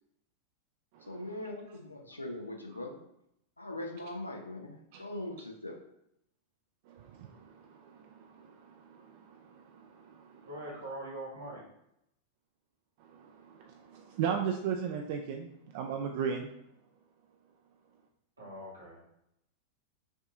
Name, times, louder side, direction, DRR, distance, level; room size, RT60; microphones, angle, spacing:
voice 1, 1.1-3.0 3.6-5.7, left 1 dB, 85° left, 2 dB, 0.6 m, -41 dB
voice 2, 6.9-10.5 13.0-16.5, right 7 dB, 50° right, 2 dB, 0.3 m, -37 dB
voice 3, 10.4-11.6 18.4-19.0, right 1 dB, 75° right, -4 dB, 1.6 m, -42 dB
6.0 x 2.6 x 2.5 m, 0.79 s
figure-of-eight pair, 90°, 0 cm